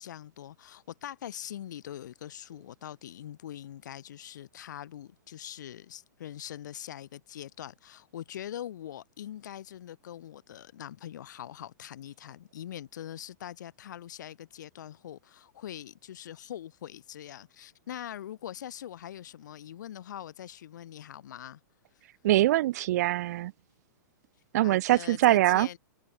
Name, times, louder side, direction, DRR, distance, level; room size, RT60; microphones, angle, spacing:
voice 1, 0.0-21.6 24.6-25.8, left 11 dB, 70° left, 3.1 m, -43 dB
voice 2, 22.2-23.5 24.5-25.7, right 15 dB, 55° right, 0.7 m, -23 dB
hypercardioid pair, 130°, 10 cm